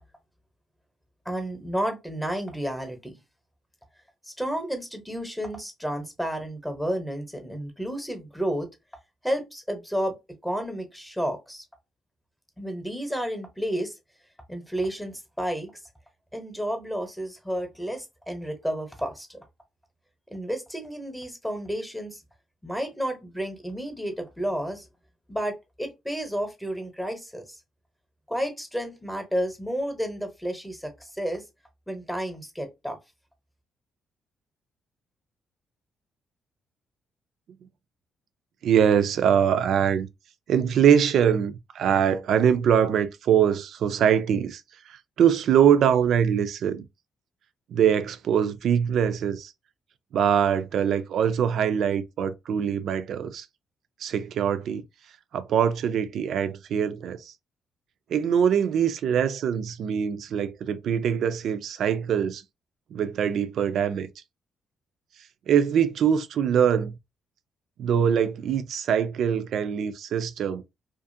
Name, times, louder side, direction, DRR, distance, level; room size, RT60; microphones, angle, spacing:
voice 1, 1.3-3.2 4.4-8.7 9.2-10.2 10.4-11.6 12.6-13.9 14.5-15.7 16.3-19.4 20.3-22.2 22.6-24.8 25.3-27.6 28.3-31.4 31.9-33.0, equal, 5° left, 0.9 m, -31 dB
voice 2, 38.6-40.1 40.5-44.6 44.9-46.9 47.7-49.5 50.1-53.5 54.0-54.8 55.3-57.3 58.1-62.4 62.9-64.1 65.5-66.9 67.8-70.6, right 8 dB, 70° right, 0.3 m, -23 dB
2.5 x 2.4 x 2.6 m
cardioid pair, 90°, 0 cm